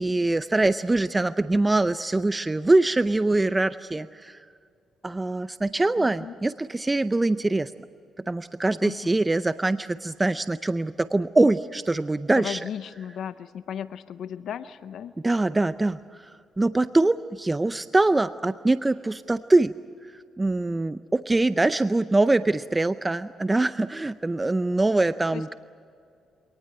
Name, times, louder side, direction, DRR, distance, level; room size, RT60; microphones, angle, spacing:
voice 1, 0.0-4.4 5.0-7.7 8.3-12.6 15.2-16.3 16.6-19.7 20.1-25.5, right 2 dB, 15° right, 13 dB, 0.5 m, -23 dB
voice 2, 6.0-6.3 8.8-9.2 12.3-15.1 25.3-25.6, left 9 dB, 70° left, 13 dB, 0.6 m, -36 dB
25.5 x 19.0 x 8.9 m, 2.3 s
cardioid pair, 90°, 0 cm